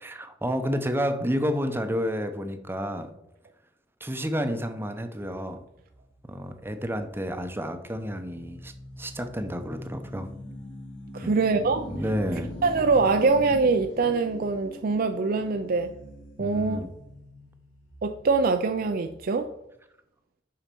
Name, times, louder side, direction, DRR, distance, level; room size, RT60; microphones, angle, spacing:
voice 1, 0.0-3.1 4.0-5.6 6.2-10.3 11.2-11.4 11.9-12.5 16.4-16.9, equal, 10° right, 0.7 m, -30 dB
sound 1, 5.5-19.4, equal, 80° left, 1.5 m, -43 dB
voice 2, 11.1-11.8 12.6-15.9 16.4-16.8 18.0-19.5, right 4 dB, 50° right, 0.5 m, -23 dB
7.4 x 5.7 x 5.3 m
head